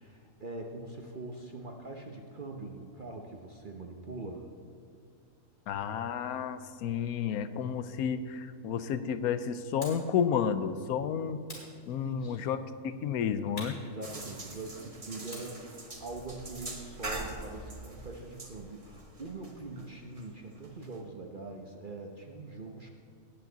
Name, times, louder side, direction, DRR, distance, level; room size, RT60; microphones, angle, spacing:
voice 1, 0.0-4.5 12.0-12.4 13.8-22.9, right 2 dB, 40° right, 1 dB, 0.9 m, -43 dB
voice 2, 5.7-11.4 11.9-12.6 12.8-13.8, left 7 dB, 85° left, 12 dB, 1.1 m, -31 dB
sound 1, 9.8-10.1 11.5-12.4 13.5-14.7 15.3-17.5, left 1 dB, 45° left, 3.9 m, -48 dB
sound 2, 14.0-21.0, right 2 dB, 25° right, 1.2 m, -44 dB
18.0 x 8.9 x 3.9 m, 2.4 s
omnidirectional pair, 1.5 m